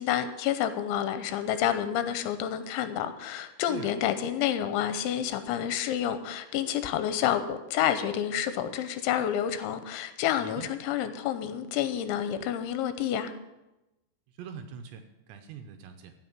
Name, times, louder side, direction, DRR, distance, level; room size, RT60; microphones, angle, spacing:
voice 1, 0.0-13.3, left 10 dB, 85° left, 11 dB, 3.1 m, -29 dB
voice 2, 14.3-16.1, right 7 dB, 80° right, 6 dB, 2.9 m, -43 dB
15.5 x 5.7 x 9.0 m, 0.98 s
omnidirectional pair, 5.4 m